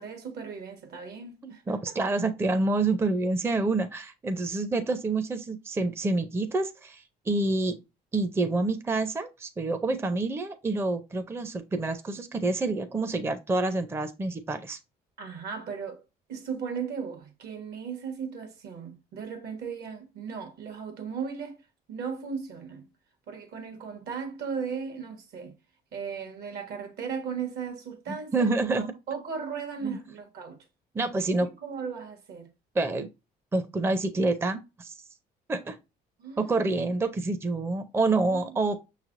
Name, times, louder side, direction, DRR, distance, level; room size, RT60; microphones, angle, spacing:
voice 1, 0.0-2.0 15.2-16.0 16.3-21.6 21.9-22.9 23.3-25.5 25.9-30.6 31.2-32.5 36.2-36.6 38.3-38.5, right 6 dB, 70° right, 1.2 m, -37 dB
voice 2, 1.4-7.8 8.1-14.8 28.3-28.9 29.8-30.0 30.9-31.5 32.7-33.1 33.5-35.0 35.5-35.8 36.4-38.8, right 2 dB, 15° right, 0.5 m, -27 dB
6.0 x 3.2 x 2.5 m
cardioid pair, 110°, 17 cm